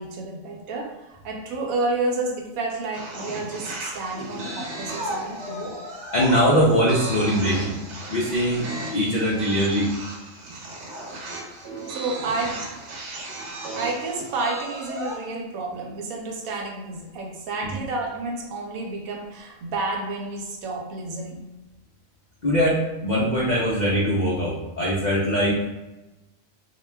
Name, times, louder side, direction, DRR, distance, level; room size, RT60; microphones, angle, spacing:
voice 1, 0.0-5.8 11.9-12.6 13.8-21.4, right 2 dB, 90° right, 1 dB, 1.0 m, -30 dB
sound 1, 2.9-15.3, right 1 dB, 65° right, 0.9 m, -35 dB
voice 2, 6.1-7.8 8.1-9.9 17.6-17.7 22.4-25.6, equal, 85° left, -5 dB, 0.4 m, -22 dB
2.4 x 2.2 x 3.2 m, 1.0 s
omnidirectional pair, 1.4 m